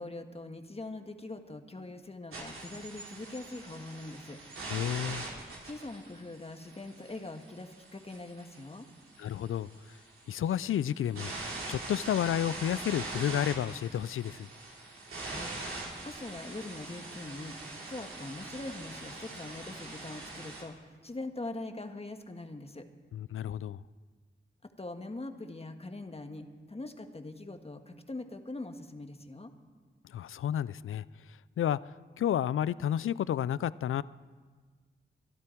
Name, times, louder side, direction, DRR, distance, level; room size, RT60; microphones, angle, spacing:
voice 1, 0.0-4.4 5.6-8.9 15.2-15.5 16.0-17.6 17.9-22.9 24.8-29.5, left 2 dB, 30° left, 1.6 m, -42 dB
sound 1, 2.3-20.6, right 2 dB, 85° right, 3.2 m, -43 dB
voice 2, 4.7-5.3 9.2-9.7 10.3-11.3 11.7-14.5 23.1-23.8 30.0-31.0 31.6-31.8 32.2-34.0, left 10 dB, 80° left, 0.4 m, -31 dB
24.5 x 12.0 x 4.6 m
cardioid pair, 50°, 21 cm